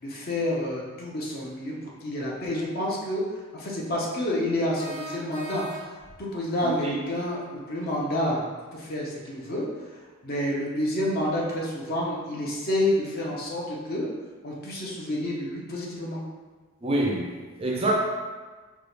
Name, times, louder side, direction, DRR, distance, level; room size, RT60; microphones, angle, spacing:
voice 1, 0.0-1.8 2.0-3.2 3.5-5.7 6.2-8.4 8.7-14.1 14.4-16.2, left 1 dB, 45° left, -3 dB, 0.8 m, -29 dB
sound 1, 4.8-6.2, equal, 80° left, 1.0 m, -39 dB
voice 2, 6.6-7.0 16.8-18.0, right 1 dB, 25° right, -2 dB, 0.4 m, -26 dB
4.6 x 2.4 x 3.3 m, 1.3 s
head